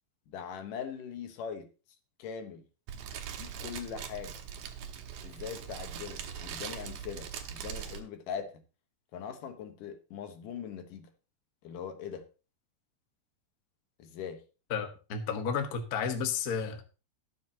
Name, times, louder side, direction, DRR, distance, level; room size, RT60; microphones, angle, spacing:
voice 1, 0.3-1.7 2.2-2.7 3.4-4.4 5.2-8.6 9.1-11.1 11.6-12.3 14.0-14.4, left 7 dB, 85° left, 2.9 m, -41 dB
Fire, 2.9-8.0, right 8 dB, 75° right, 2.6 m, -41 dB
voice 2, 14.7-16.8, left 6 dB, 55° left, 1.0 m, -32 dB
19.0 x 7.3 x 2.9 m
omnidirectional pair, 3.7 m